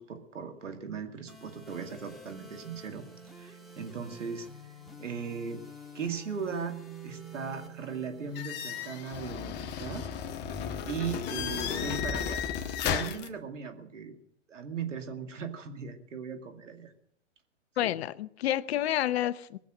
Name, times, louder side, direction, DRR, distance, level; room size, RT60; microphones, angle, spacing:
voice 1, 0.0-3.0 3.4-4.5 5.0-5.6 5.9-10.0 10.9-12.4 12.8-14.2 14.5-16.9 17.8-17.9, right 6 dB, 85° right, 2.3 m, -38 dB
sound 1, 1.3-9.3, right 3 dB, ahead, 1.8 m, -48 dB
sound 2, 8.3-13.3, left 8 dB, 30° left, 1.3 m, -34 dB
voice 2, 17.8-19.6, left 12 dB, 60° left, 0.8 m, -29 dB
20.5 x 7.3 x 7.7 m
hypercardioid pair, 125°, 36 cm